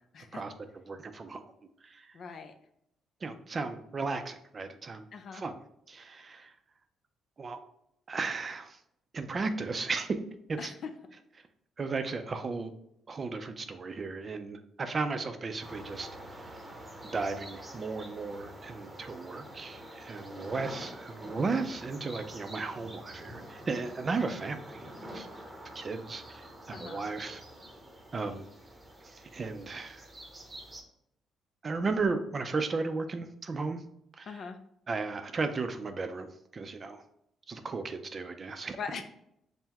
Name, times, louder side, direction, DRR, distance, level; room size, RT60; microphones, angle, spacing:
voice 1, 0.9-1.4 1.8-2.1 3.2-5.1 5.3-5.5 5.9-6.5 7.4-7.6 8.1-8.8 9.1-10.2 10.5-10.7 11.8-12.7 13.1-16.1 17.1-24.8 25.1-25.3 25.7-27.4 28.1-28.5 29.1-30.1 31.6-33.8 34.2-34.4 34.9-36.3 36.5-37.0 37.5-38.8, right 4 dB, 40° right, 8 dB, 0.4 m, -35 dB
voice 2, 2.1-2.5 5.1-5.4 10.6-10.9 24.2-24.3 26.7-27.0 34.3-34.6 38.8-39.0, left 5 dB, 55° left, 7 dB, 0.5 m, -41 dB
sound 1, 15.6-30.8, right 1 dB, 20° right, 0.8 m, -46 dB
5.5 x 2.1 x 2.9 m, 0.74 s
cardioid pair, 90°, 0 cm